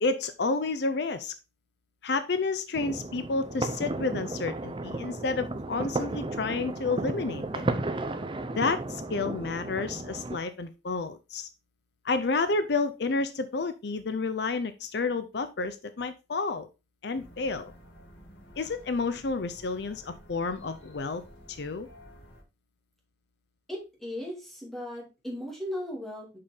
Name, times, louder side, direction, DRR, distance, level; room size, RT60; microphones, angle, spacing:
voice 1, 0.0-1.3 2.0-7.6 8.6-11.5 12.0-16.7 17.0-17.7 18.6-21.2 21.5-21.9, left 3 dB, 65° left, 11 dB, 0.6 m, -30 dB
sound 1, 2.7-10.4, right 2 dB, 30° right, 0.7 m, -34 dB
sound 2, 17.1-22.4, equal, 85° left, 1.9 m, -52 dB
voice 2, 23.7-26.4, left 1 dB, ahead, -2 dB, 2.4 m, -37 dB
6.6 x 5.7 x 3.5 m, 0.27 s
head